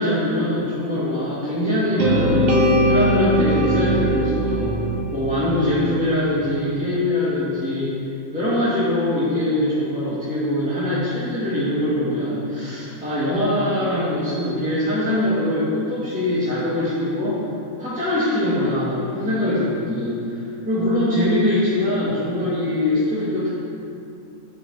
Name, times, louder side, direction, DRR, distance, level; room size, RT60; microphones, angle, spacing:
voice 1, 0.0-2.4 2.8-4.7 5.1-7.9 8.3-17.4 17.8-23.5, left 1 dB, 5° right, -12 dB, 1.6 m, -22 dB
sound 1, 2.0-6.1, right 1 dB, 65° right, 1.3 m, -20 dB
8.4 x 4.7 x 3.9 m, 2.6 s
omnidirectional pair, 1.5 m